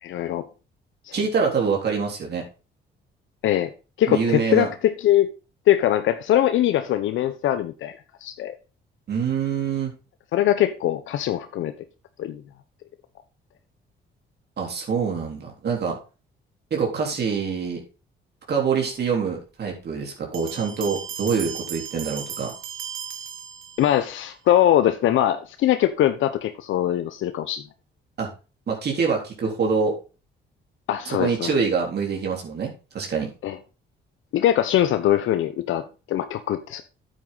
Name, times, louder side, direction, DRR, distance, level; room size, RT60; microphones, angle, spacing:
voice 1, 0.0-0.4 1.0-1.1 3.4-3.7 4.0-5.3 5.7-7.9 8.2-8.5 10.3-11.7 12.2-12.4 23.8-27.6 30.9-31.5 33.4-33.6 34.3-36.8, left 12 dB, 80° left, 0.9 m, -22 dB
voice 2, 1.1-2.4 4.1-4.7 9.1-9.9 14.6-16.0 16.7-17.8 18.5-22.5 28.2-28.3 28.7-30.0 31.1-33.3, right 5 dB, 55° right, 3.8 m, -25 dB
Bell, 20.3-24.1, right 8 dB, 80° right, 2.1 m, -36 dB
9.2 x 8.9 x 4.0 m
cardioid pair, 90°, 20 cm